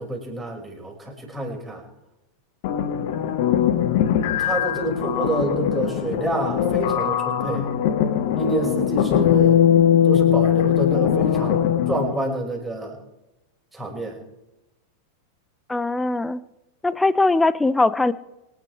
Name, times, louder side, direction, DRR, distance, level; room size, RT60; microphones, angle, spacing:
voice 1, 0.0-1.8 4.4-7.7 8.4-9.6 10.0-13.0 13.7-14.2, right 1 dB, 5° right, -2 dB, 5.6 m, -28 dB
sound 1, 2.6-12.2, left 9 dB, 50° left, 1.4 m, -20 dB
voice 2, 15.7-16.4 16.8-18.1, left 2 dB, 10° left, 18 dB, 0.7 m, -20 dB
25.0 x 9.9 x 4.7 m, 0.97 s
figure-of-eight pair, 90°, 0 cm